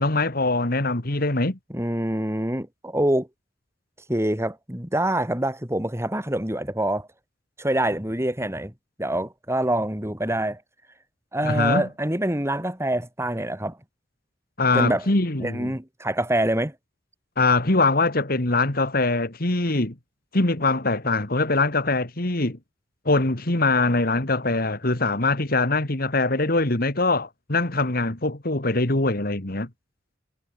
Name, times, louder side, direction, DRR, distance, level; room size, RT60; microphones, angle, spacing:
voice 1, 0.0-1.6 11.4-11.9 14.6-15.7 17.4-19.9 20.3-22.6 23.1-29.7, left 2 dB, 55° left, 2.3 m, -23 dB
voice 2, 1.7-3.3 4.1-7.1 7.6-8.7 9.0-10.6 11.3-13.8 14.7-15.1 15.4-16.7, right 1 dB, 15° right, 6.2 m, -25 dB
head